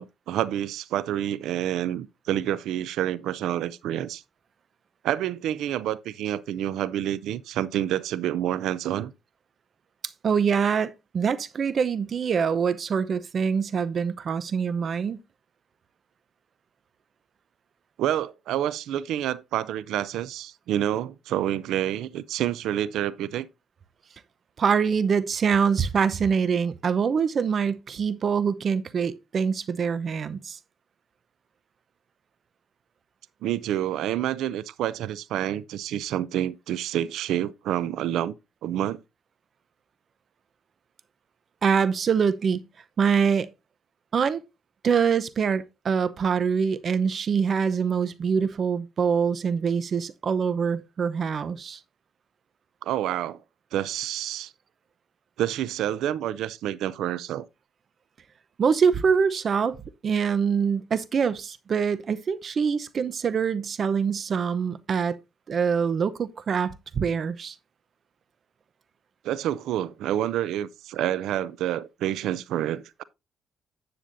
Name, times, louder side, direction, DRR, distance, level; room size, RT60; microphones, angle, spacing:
voice 1, 0.0-4.2 5.0-9.1 18.0-23.5 33.4-38.4 38.6-39.0 52.8-53.4 53.7-54.5 55.4-57.5 69.2-73.0, right 11 dB, 85° right, 0.5 m, -28 dB
voice 2, 10.2-15.2 24.6-30.6 41.6-42.6 43.0-43.5 44.1-44.4 44.8-51.8 58.6-59.8 60.0-65.2 65.5-67.5, right 6 dB, 50° right, 0.7 m, -24 dB
10.5 x 8.2 x 2.6 m
cardioid pair, 90°, 0 cm